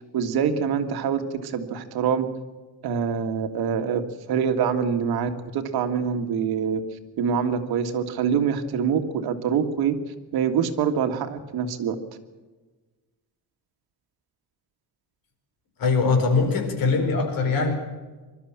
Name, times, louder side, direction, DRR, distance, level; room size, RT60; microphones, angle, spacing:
voice 1, 0.1-2.3 2.8-4.0 4.3-6.8 7.2-9.9 10.3-12.0, right 7 dB, 75° right, 7 dB, 1.9 m, -25 dB
voice 2, 15.8-17.7, left 4 dB, 65° left, 5 dB, 4.5 m, -22 dB
23.5 x 13.0 x 8.8 m, 1.3 s
cardioid pair, 180°, 38 cm